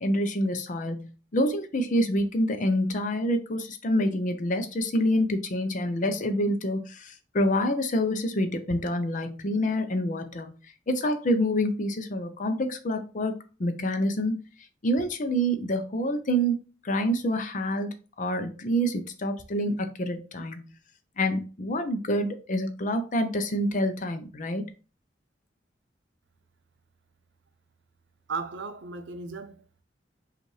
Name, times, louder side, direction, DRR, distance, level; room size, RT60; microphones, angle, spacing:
voice 1, 0.0-10.5 10.9-13.3 13.6-14.4 14.8-17.9 18.2-20.6 21.2-24.7, equal, 45° left, 0.6 m, -27 dB
voice 2, 28.3-29.8, right 4 dB, 90° right, 0.6 m, -36 dB
5.2 x 2.5 x 3.2 m
head